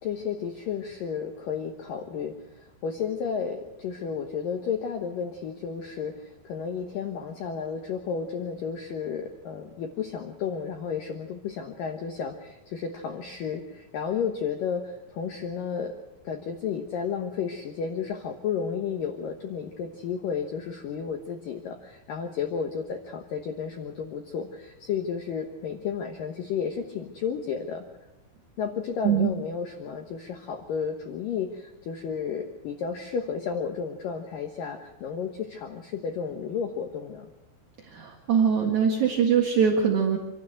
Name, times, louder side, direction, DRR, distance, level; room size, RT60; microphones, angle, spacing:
voice 1, 0.0-15.9 16.2-27.8 28.6-37.3, left 6 dB, 80° left, 4 dB, 2.0 m, -32 dB
voice 2, 37.9-40.2, right 7 dB, 55° right, 0 dB, 2.2 m, -22 dB
27.0 x 12.5 x 7.9 m, 0.98 s
omnidirectional pair, 5.8 m